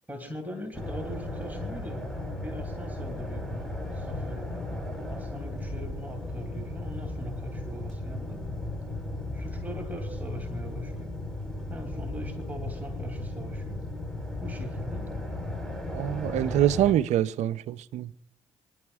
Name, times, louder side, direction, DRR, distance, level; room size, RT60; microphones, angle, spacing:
voice 1, 0.1-4.7 5.1-8.5 9.3-11.2 11.7-13.8 14.4-15.1, equal, 15° right, 2.7 m, -41 dB
sound 1, 0.7-16.9, left 1 dB, 5° left, 3.7 m, -35 dB
voice 2, 15.9-18.1, right 11 dB, 65° right, 0.6 m, -25 dB
27.0 x 11.0 x 2.4 m
hypercardioid pair, 50°, 13 cm